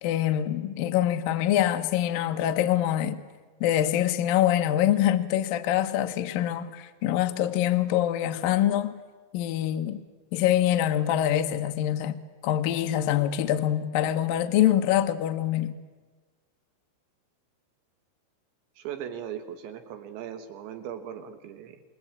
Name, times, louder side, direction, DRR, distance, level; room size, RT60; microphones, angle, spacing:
voice 1, 0.0-3.2 3.6-9.0 9.3-10.0 10.3-12.2 12.4-15.7, left 11 dB, 75° left, 2.1 m, -25 dB
voice 2, 18.8-21.8, right 9 dB, 75° right, 3.4 m, -38 dB
27.5 x 22.0 x 8.7 m
omnidirectional pair, 5.6 m